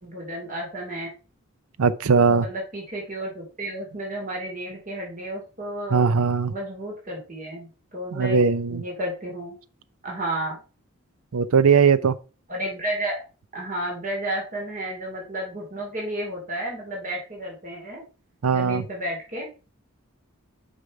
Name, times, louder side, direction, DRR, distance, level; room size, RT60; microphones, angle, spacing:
voice 1, 0.0-1.1 2.2-6.0 6.5-9.6 10.0-10.6 12.5-13.2 13.5-18.0 18.5-19.5, right 1 dB, 35° right, 2.9 m, -32 dB
voice 2, 1.8-2.5 5.9-6.5 8.1-8.8 11.3-12.1 18.4-18.8, right 5 dB, 90° right, 0.5 m, -19 dB
6.5 x 5.7 x 4.8 m
head